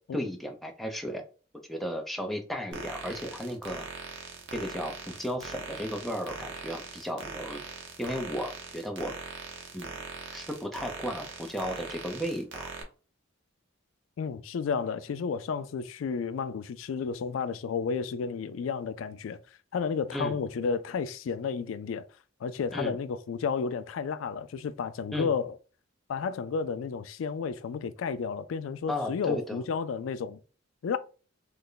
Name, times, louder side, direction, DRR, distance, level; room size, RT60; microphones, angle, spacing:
voice 1, 0.1-1.2 1.7-3.8 4.5-7.6 8.0-9.1 9.7-10.0 10.3-12.7 20.1-20.4 22.7-23.0 25.1-25.3 28.9-29.6, equal, ahead, 0.5 m, -34 dB
sound 1, 2.7-12.8, right 4 dB, 70° right, 0.9 m, -41 dB
voice 2, 14.2-19.4 19.7-22.0 22.4-25.6 26.1-30.4 30.8-31.0, left 5 dB, 85° left, 0.3 m, -32 dB
3.3 x 2.1 x 3.8 m
head